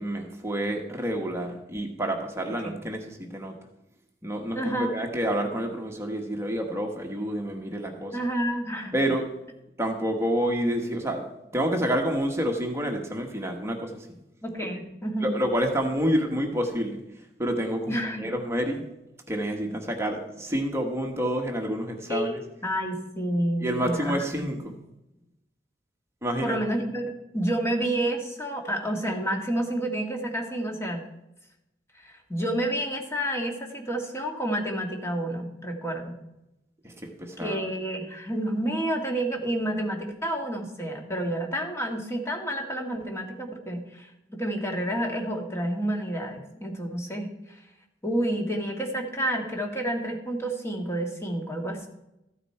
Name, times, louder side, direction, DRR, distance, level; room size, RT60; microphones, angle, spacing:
voice 1, 0.0-3.6 4.2-8.2 8.9-9.3 9.8-11.3 11.5-14.2 15.2-17.0 17.4-18.8 19.3-22.4 23.6-24.7 26.2-26.6 36.8-36.9 37.2-37.6, equal, 15° right, 2 dB, 1.3 m, -28 dB
voice 2, 4.5-5.0 8.1-8.9 14.4-15.3 17.9-18.3 22.1-24.5 26.4-27.0 27.3-31.0 32.0-36.2 37.4-47.3 48.0-51.9, right 1 dB, 15° left, 1 dB, 1.8 m, -29 dB
14.5 x 9.3 x 4.4 m, 0.89 s
head